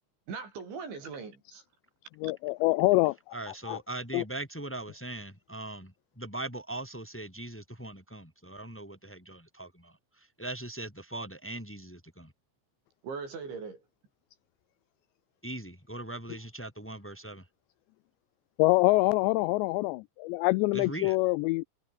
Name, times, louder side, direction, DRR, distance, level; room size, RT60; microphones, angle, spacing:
voice 1, 0.3-1.6 2.2-2.3 13.0-13.8, right 5 dB, 70° right, 9.0 m, -40 dB
voice 2, 2.2-3.2 3.7-3.8 4.1-4.2 18.6-21.6, left 21 dB, 85° left, 2.5 m, -25 dB
voice 3, 3.3-12.3 15.4-17.5 20.7-21.2, right 2 dB, 5° left, 4.2 m, -40 dB
omnidirectional pair, 5.6 m